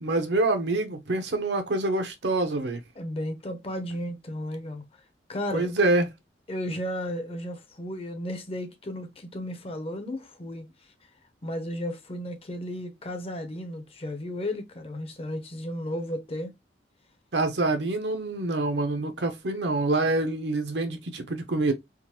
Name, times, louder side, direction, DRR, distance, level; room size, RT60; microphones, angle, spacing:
voice 1, 0.0-2.8 5.5-6.1 17.3-21.7, right 2 dB, 75° right, 0.8 m, -26 dB
voice 2, 3.0-4.8 5.3-5.7 6.5-10.7 11.4-16.5, left 1 dB, 35° left, 0.7 m, -34 dB
3.7 x 2.6 x 2.9 m
head